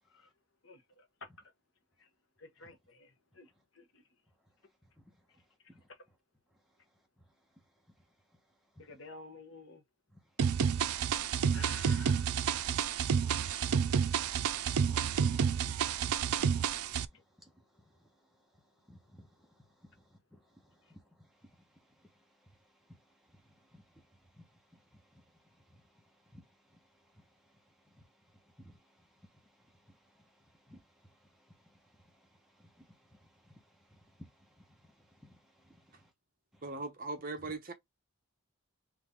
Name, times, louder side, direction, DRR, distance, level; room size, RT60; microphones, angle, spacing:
voice 1, 0.6-1.1 2.0-2.1 2.4-4.0 8.8-9.8 10.5-12.5 17.1-17.2 20.8-20.9, left 3 dB, 60° left, 1.1 m, -53 dB
sound 1, 10.4-17.0, right 7 dB, 90° right, 0.4 m, -30 dB
voice 2, 15.3-15.8 16.4-16.5 17.4-17.5 18.9-19.6 20.0-20.4 20.9-21.3 21.6-21.7 22.0-22.1 22.9-23.0 23.3-24.5 24.7-25.2 25.6-26.4 26.7-26.8 27.1-27.3 27.7-36.1 36.5-36.6, equal, ahead, 0.9 m, -60 dB
voice 3, 36.6-37.7, right 3 dB, 40° right, 0.8 m, -39 dB
3.9 x 3.2 x 3.6 m
head